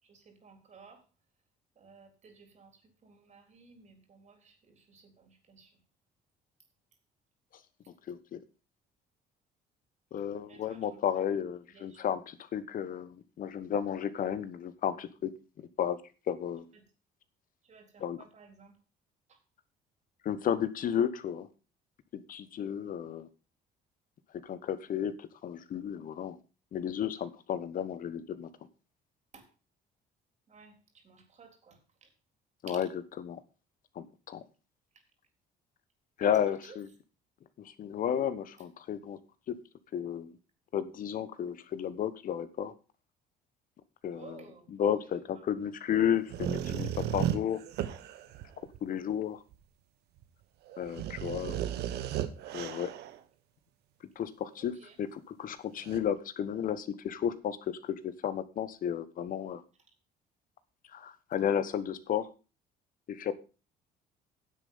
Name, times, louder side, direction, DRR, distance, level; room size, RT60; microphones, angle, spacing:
voice 1, 0.0-1.0 1.8-5.7 10.5-11.0 11.7-12.0 16.7-16.8 17.6-18.7 19.3-19.4 29.3-29.5 30.5-32.1 32.7-32.8 36.2-36.8 44.1-44.7 45.3-45.5 54.6-55.0, right 5 dB, 45° right, 5 dB, 3.7 m, -55 dB
voice 2, 8.1-8.4 10.1-15.3 15.8-16.0 16.3-16.6 18.0-18.2 20.2-21.5 22.1-23.3 24.4-26.4 26.7-28.5 32.6-32.9 33.2-33.4 33.9-34.4 36.2-36.9 37.6-39.2 39.5-39.6 39.9-40.3 40.7-42.7 44.0-47.6 48.8-49.4 50.8-51.6 52.5-52.9 54.2-59.6 60.9-62.3 63.1-63.3, left 9 dB, 55° left, 14 dB, 1.2 m, -33 dB
sound 1, 46.3-48.8 49.5-49.6 50.2-50.3 50.7-53.2 55.8-56.0, right 11 dB, 75° right, 1.2 m, -35 dB
10.0 x 7.8 x 5.6 m, 0.33 s
cardioid pair, 110°, 17 cm